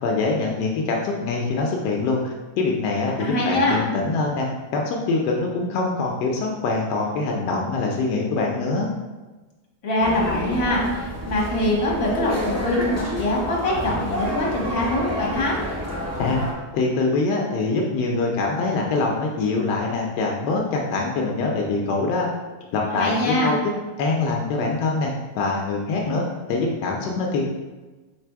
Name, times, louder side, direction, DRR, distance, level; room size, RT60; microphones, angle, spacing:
voice 1, 0.0-4.5 4.7-8.9 16.2-16.4 16.7-22.3 22.7-23.7 24.0-27.4, left 3 dB, 85° left, 0 dB, 1.2 m, -24 dB
voice 2, 3.2-3.8 9.8-15.6 22.9-23.5, left 1 dB, 55° left, -4 dB, 1.6 m, -23 dB
sound 1, 10.0-16.5, equal, 15° right, 0.7 m, -29 dB
3.5 x 3.3 x 4.5 m, 1.2 s
omnidirectional pair, 1.8 m